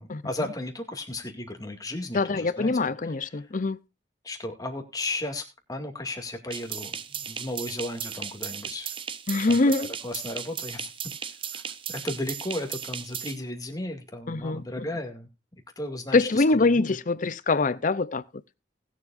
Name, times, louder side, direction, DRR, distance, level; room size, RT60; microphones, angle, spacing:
voice 1, 0.0-2.7 4.2-8.9 9.5-10.9 11.5-11.6 11.9-15.3 15.8-17.0, left 1 dB, 20° left, 2.2 m, -35 dB
voice 2, 2.1-3.8 9.3-9.9 14.3-14.9 16.1-18.2, left 3 dB, 45° left, 0.6 m, -24 dB
sound 1, 6.5-13.4, right 8 dB, 30° right, 0.6 m, -36 dB
20.0 x 7.5 x 2.5 m
head